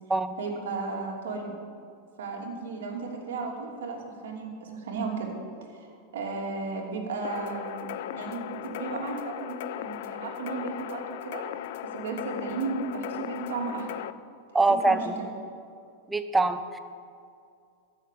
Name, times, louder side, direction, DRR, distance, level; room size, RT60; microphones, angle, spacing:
voice 1, 0.4-1.5 2.2-5.4 5.7-5.9 6.1-11.5 11.8-14.0 14.7-15.1, right 4 dB, 80° right, 0 dB, 2.9 m, -34 dB
sound 1, 7.2-14.1, left 13 dB, 65° left, 0.5 m, -37 dB
voice 2, 14.5-15.0 16.1-16.8, right 2 dB, 10° right, 10 dB, 0.8 m, -23 dB
13.5 x 7.1 x 8.4 m, 2.4 s
hypercardioid pair, 120°, 0 cm